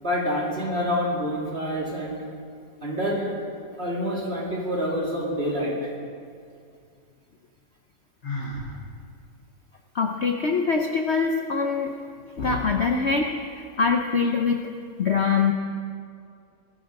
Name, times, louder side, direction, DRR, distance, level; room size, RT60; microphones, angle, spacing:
voice 1, 0.0-2.2 2.8-3.3 3.8-5.7, equal, 35° right, -4 dB, 3.1 m, -27 dB
Sigh, 8.2-8.7, left 1 dB, 85° left, 5.4 m, -32 dB
voice 2, 9.9-11.9 12.4-14.7 15.0-15.5, left 5 dB, 50° left, 3 dB, 0.9 m, -23 dB
19.5 x 12.5 x 5.3 m, 2.3 s
omnidirectional pair, 1.8 m